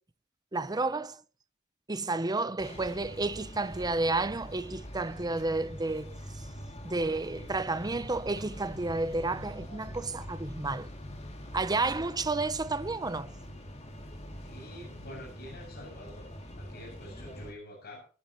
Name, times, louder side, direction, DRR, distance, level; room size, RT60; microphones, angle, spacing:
voice 1, 0.5-1.2 1.9-6.2 6.8-10.9 11.5-13.3, right 3 dB, 20° right, 0.7 m, -31 dB
sound 1, 2.6-17.5, equal, 30° left, 2.9 m, -44 dB
voice 2, 14.4-18.1, left 1 dB, 50° left, 7.2 m, -47 dB
22.0 x 11.0 x 3.1 m
head